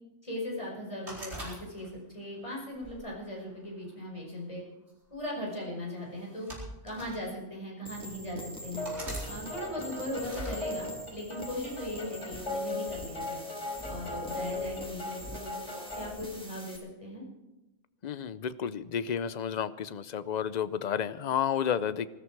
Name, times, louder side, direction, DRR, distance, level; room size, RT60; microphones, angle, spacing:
voice 1, 0.2-1.9 2.1-4.6 5.1-6.5 6.8-8.9 9.2-13.4 13.9-15.5 16.0-17.2, left 1 dB, 25° left, -2 dB, 5.3 m, -38 dB
sound 1, 1.1-2.1 2.7-3.9 4.9-5.1 6.2-7.2 7.9-8.0 8.8-9.3 10.2-10.6, right 1 dB, 65° right, 4.8 m, -41 dB
sound 2, 7.9-16.8, equal, 5° left, 2.0 m, -45 dB
sound 3, 8.8-16.1, left 2 dB, 70° left, 5.4 m, -38 dB
voice 2, 18.0-22.1, left 8 dB, 45° left, 14 dB, 0.6 m, -31 dB
20.0 x 13.5 x 4.7 m, 1.0 s
omnidirectional pair, 1.2 m